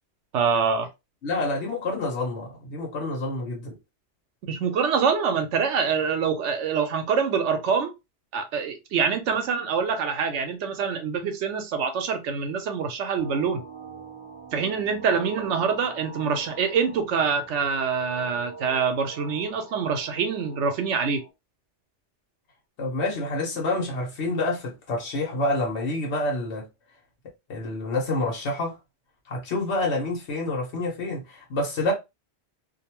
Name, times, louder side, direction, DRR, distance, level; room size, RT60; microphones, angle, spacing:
voice 1, 0.3-0.9 4.4-7.9 8.3-13.6 14.5-21.2, right 6 dB, 85° right, 1.0 m, -25 dB
voice 2, 1.2-3.7 22.8-26.7 27.5-28.8 29.3-31.9, left 2 dB, 75° left, 1.2 m, -28 dB
sound 1, 13.2-21.3, right 4 dB, 25° right, 0.7 m, -43 dB
2.6 x 2.2 x 2.9 m
omnidirectional pair, 1.2 m